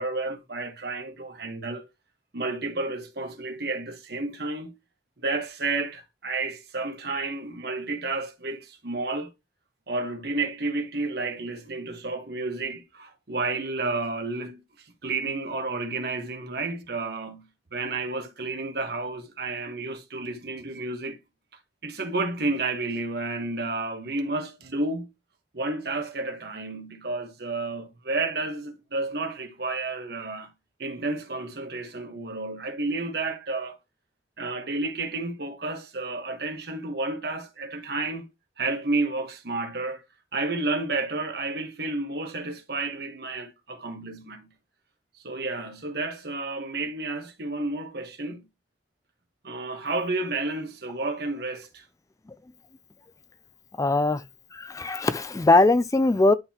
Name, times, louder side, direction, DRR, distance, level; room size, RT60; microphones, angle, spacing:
voice 1, 0.0-1.9 2.3-4.7 5.2-9.3 9.9-17.4 17.7-21.2 21.8-25.1 25.5-30.5 30.8-33.8 34.4-38.3 38.6-40.0 40.3-44.5 45.2-48.4 49.4-51.8, right 3 dB, 60° right, 1.3 m, -31 dB
voice 2, 53.8-54.2 54.5-56.3, left 2 dB, 20° left, 0.3 m, -21 dB
11.0 x 3.8 x 2.9 m
head